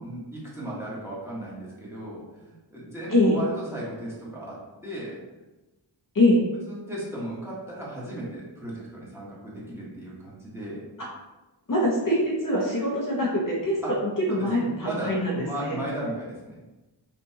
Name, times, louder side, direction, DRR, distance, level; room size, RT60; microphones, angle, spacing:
voice 1, 0.0-5.2 6.6-10.8 13.8-13.9 14.3-16.6, right 1 dB, 5° right, -7 dB, 1.3 m, -36 dB
voice 2, 11.7-15.8, left 1 dB, 45° left, -4 dB, 0.9 m, -24 dB
5.3 x 2.6 x 2.8 m, 1.1 s
wide cardioid pair, 95°, 45 cm